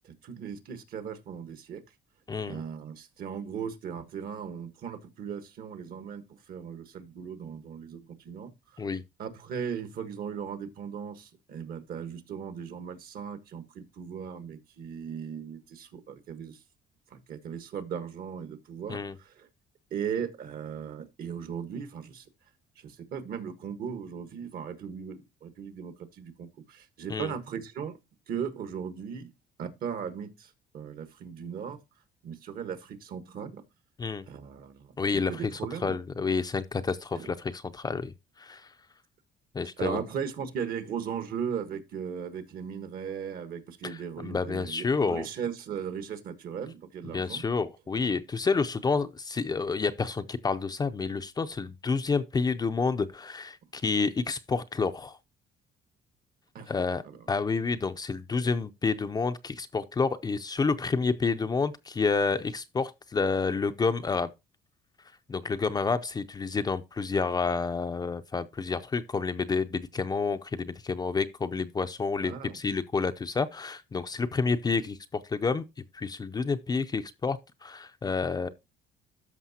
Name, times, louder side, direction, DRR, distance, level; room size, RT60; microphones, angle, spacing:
voice 1, 0.0-1.8 2.5-8.8 9.2-16.6 17.1-19.5 19.9-22.3 22.8-28.0 28.3-29.3 29.6-31.8 32.2-33.6 34.3-36.0 37.1-37.3 39.8-47.4 56.5-56.7 57.0-57.2 72.2-72.6, right 7 dB, 60° right, 1.4 m, -37 dB
voice 2, 2.3-2.6 8.8-9.0 18.9-19.1 27.1-27.3 34.0-34.3 35.0-35.3 35.8-38.7 39.5-40.0 43.8-45.3 47.1-55.2 56.7-57.0 57.3-64.3 65.3-75.6 75.9-78.5, left 4 dB, 25° left, 0.5 m, -29 dB
13.5 x 5.4 x 2.8 m
cardioid pair, 110°, 17 cm